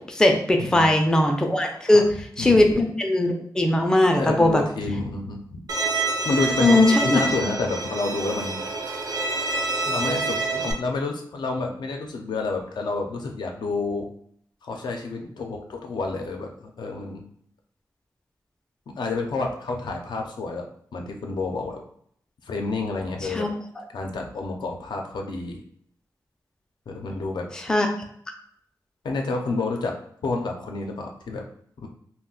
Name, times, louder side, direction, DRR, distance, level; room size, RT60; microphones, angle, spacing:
voice 1, 0.1-2.1 2.4-4.6 6.6-7.2 23.3-23.5 27.7-27.9, left 2 dB, 10° left, 3 dB, 0.3 m, -19 dB
voice 2, 0.6-0.9 1.9-2.1 2.4-2.7 4.1-5.6 6.1-8.6 9.9-14.1 14.6-17.2 19.0-21.8 22.4-23.5 23.9-25.6 26.9-27.5 29.0-29.9 30.2-31.4 31.8-31.9, left 3 dB, 80° left, 2 dB, 0.5 m, -29 dB
Bowed string instrument, 5.7-10.7, right 3 dB, 65° right, 0.5 m, -27 dB
2.3 x 2.1 x 3.7 m, 0.65 s
wide cardioid pair, 150°, 7 cm